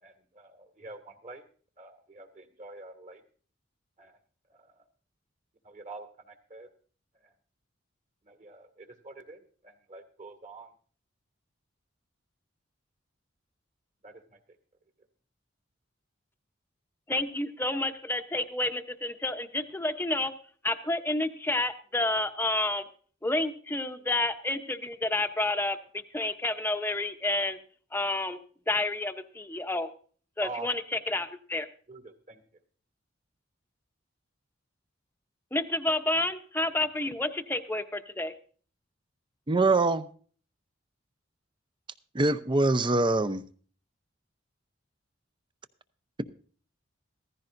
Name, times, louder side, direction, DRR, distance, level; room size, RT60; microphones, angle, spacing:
voice 1, 0.0-1.4 1.8-3.2 4.0-4.2 4.5-4.8 5.6-6.7 7.2-7.3 8.2-10.7 14.0-14.4 30.4-30.7 31.9-32.4, right 3 dB, 40° right, 2.1 m, -46 dB
voice 2, 17.1-20.3 20.6-22.8 23.2-27.6 27.9-28.4 28.7-29.9 30.4-31.7 35.5-38.3, left 2 dB, 10° left, 0.8 m, -30 dB
voice 3, 39.5-40.1 42.1-43.4, right 2 dB, 25° right, 0.6 m, -24 dB
15.0 x 15.0 x 2.6 m
head